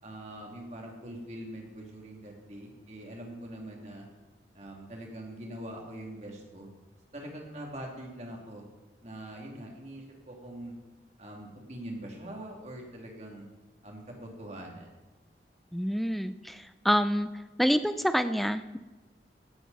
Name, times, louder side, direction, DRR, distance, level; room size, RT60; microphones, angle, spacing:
voice 1, 0.0-4.1 4.5-6.7 7.1-8.6 9.0-10.7 11.2-13.4 13.8-15.0, right 1 dB, 40° right, 0 dB, 2.5 m, -43 dB
voice 2, 15.7-17.3 17.6-18.8, equal, ahead, 11 dB, 0.4 m, -27 dB
16.0 x 11.5 x 4.0 m, 1.2 s
head